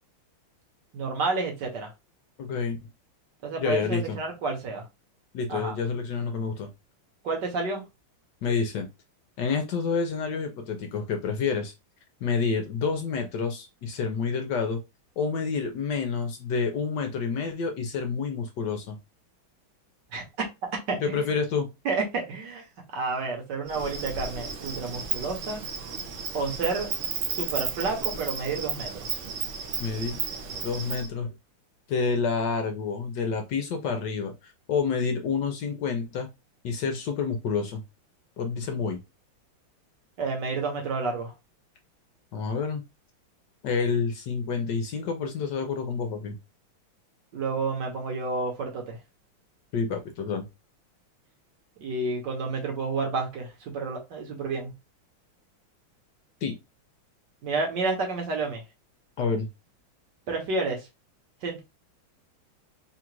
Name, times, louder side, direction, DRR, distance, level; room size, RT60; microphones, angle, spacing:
voice 1, 0.9-1.9 3.4-4.8 5.5-5.7 7.2-7.8 20.1-20.2 20.6-21.3 21.8-25.6 26.3-26.9 27.3-28.9 40.2-41.3 47.3-49.0 51.8-54.7 57.4-58.6 60.3-60.9 61.4-61.6, right 3 dB, 60° right, 2 dB, 1.6 m, -30 dB
voice 2, 2.4-2.8 3.6-4.2 5.3-6.7 8.4-8.9 9.4-11.7 12.2-14.8 15.2-19.0 21.0-21.7 29.8-30.2 30.6-31.3 31.9-36.3 36.6-37.8 38.4-39.0 42.3-42.8 43.6-46.4 49.7-50.5 56.4-56.5 59.2-59.5, left 5 dB, 65° left, 5 dB, 1.2 m, -28 dB
Insect, 23.7-31.1, right 6 dB, 90° right, 0.6 m, -33 dB
3.9 x 2.4 x 4.5 m, 0.24 s
omnidirectional pair, 2.3 m